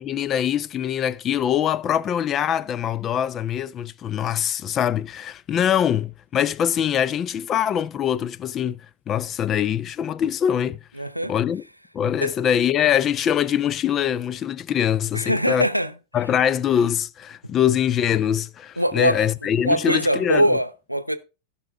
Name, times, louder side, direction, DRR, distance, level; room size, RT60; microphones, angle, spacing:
voice 1, 0.0-10.8 11.3-11.6 11.9-15.7 16.1-20.5, left 9 dB, 30° left, 0.4 m, -23 dB
voice 2, 11.0-11.3 12.2-12.3 15.1-15.9 18.8-19.2 19.6-21.2, equal, 90° right, 0.7 m, -22 dB
15.5 x 5.8 x 3.4 m
figure-of-eight pair, 90°, 0 cm